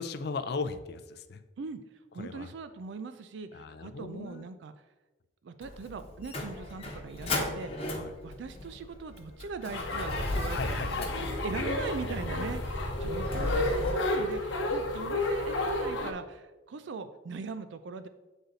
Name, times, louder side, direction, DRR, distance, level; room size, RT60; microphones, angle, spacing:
voice 1, 0.0-1.4 2.2-2.5 3.5-4.5 7.9-8.1 10.5-11.5 14.2-14.3, left 4 dB, 55° left, 10 dB, 0.4 m, -37 dB
voice 2, 2.1-4.7 5.4-7.9 8.2-11.0 11.4-18.1, right 4 dB, 65° right, 10 dB, 0.4 m, -40 dB
Motor vehicle (road), 5.6-13.9, left 1 dB, 30° left, 1.0 m, -36 dB
sound 1, 9.7-16.1, left 2 dB, 75° left, 0.9 m, -32 dB
8.0 x 4.0 x 4.0 m, 1.1 s
head